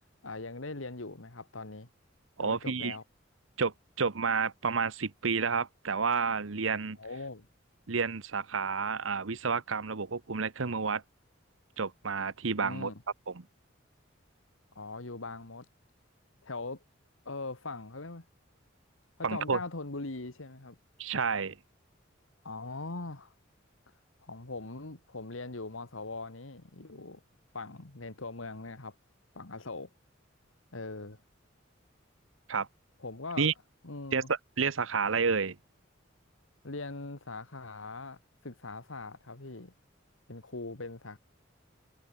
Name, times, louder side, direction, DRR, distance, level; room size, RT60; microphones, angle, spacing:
voice 1, 0.2-1.9 2.4-3.0 7.0-7.5 12.6-13.0 14.8-15.7 16.4-16.8 17.3-18.2 19.3-20.8 22.4-23.3 24.2-27.2 27.5-28.9 29.3-29.9 30.7-31.2 33.0-33.5 33.8-34.3 36.6-39.7 40.3-41.2, left 3 dB, 90° left, 2.0 m, -41 dB
voice 2, 2.4-3.0 3.6-7.0 7.9-11.0 11.8-12.9 13.3-13.4 19.2-19.6 21.0-21.6 32.5-32.7 33.4-33.5 34.1-35.6, right 5 dB, 85° right, 1.0 m, -30 dB
head